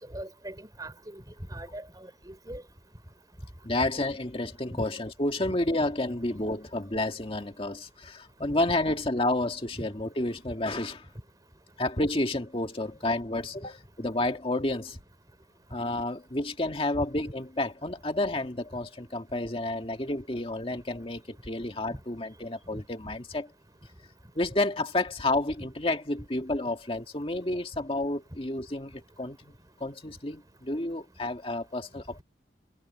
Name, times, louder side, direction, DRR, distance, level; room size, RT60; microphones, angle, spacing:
voice 1, 0.1-1.2 1.5-2.6 4.7-4.8 5.4-5.5 9.8-9.9 22.7-22.8, right 1 dB, 20° right, 5.1 m, -40 dB
voice 2, 3.6-11.1 11.8-15.0 15.7-23.5 24.4-29.5 29.8-32.2, left 2 dB, 30° left, 2.0 m, -30 dB
head